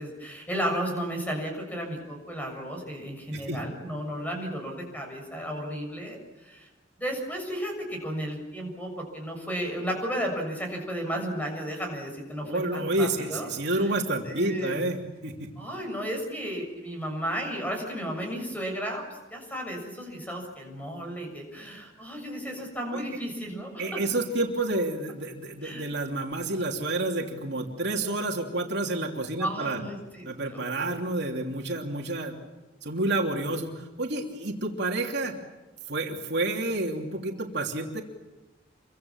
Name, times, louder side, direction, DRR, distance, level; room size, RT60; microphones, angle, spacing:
voice 1, 0.0-6.7 7.0-13.9 14.2-14.8 15.6-19.0 19.3-24.0 25.6-25.9 29.4-30.9, equal, 10° left, 2 dB, 7.1 m, -34 dB
voice 2, 12.4-15.0 15.2-15.5 22.9-23.0 23.8-29.8 30.2-32.4 32.8-35.3 35.9-38.0, right 2 dB, 60° right, 1 dB, 3.1 m, -29 dB
28.0 x 24.5 x 7.4 m, 1.1 s
head